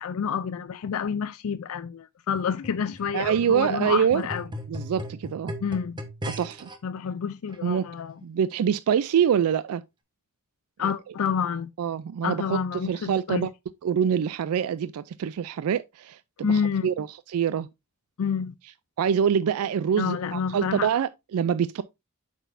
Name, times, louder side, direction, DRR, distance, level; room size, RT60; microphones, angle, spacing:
voice 1, 0.0-4.4 5.6-6.0 6.8-8.2 10.8-11.7 12.2-13.5 16.4-16.9 18.2-18.5 20.0-20.9, left 6 dB, 70° left, 0.4 m, -28 dB
sound 1, 2.4-6.8 7.5-7.6, equal, 20° right, 1.0 m, -38 dB
voice 2, 3.1-4.3 4.7-5.5 6.4-6.7 7.6-7.9 8.2-9.8 10.8-10.9 11.8-13.5 13.8-17.7 19.0-21.8, right 8 dB, 80° right, 0.3 m, -25 dB
8.2 x 6.1 x 2.5 m
head